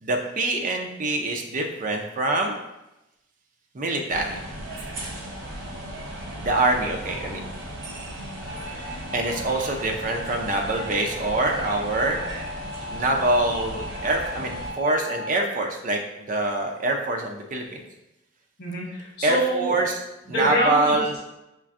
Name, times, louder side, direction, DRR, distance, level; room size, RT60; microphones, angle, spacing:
voice 1, 0.0-2.6 3.7-4.4 6.4-7.5 9.1-12.2 12.9-16.0 16.3-17.8 19.2-20.0 20.3-21.2, right 2 dB, 45° right, 2 dB, 0.5 m, -25 dB
sound 1, 4.1-14.7, right 1 dB, 75° right, 0.8 m, -36 dB
sound 2, 8.2-15.3, left 1 dB, 60° right, 1.2 m, -39 dB
voice 2, 18.6-19.7 20.3-20.9, equal, 60° left, -7 dB, 1.5 m, -25 dB
4.4 x 2.5 x 2.4 m, 0.93 s
head